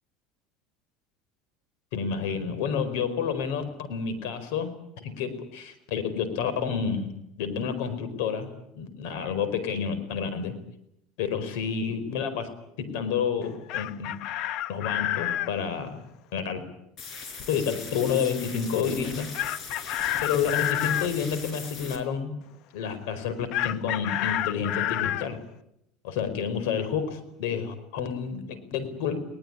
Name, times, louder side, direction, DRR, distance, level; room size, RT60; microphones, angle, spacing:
voice 1, 1.9-7.1 7.4-8.5 8.7-10.6 11.2-12.5 12.8-14.2 14.7-16.0 16.3-16.6 17.5-19.3 20.2-22.4 22.7-25.4 26.0-29.2, left 7 dB, 80° left, 12 dB, 4.7 m, -29 dB
Chicken rooster, 13.4-15.5 19.3-21.1 23.5-25.3, left 12 dB, 60° left, 0.9 m, -29 dB
sound 1, 17.0-22.0, left 5 dB, 40° left, 5.0 m, -40 dB
22.0 x 19.5 x 10.0 m, 0.80 s
supercardioid pair, 130°, 0 cm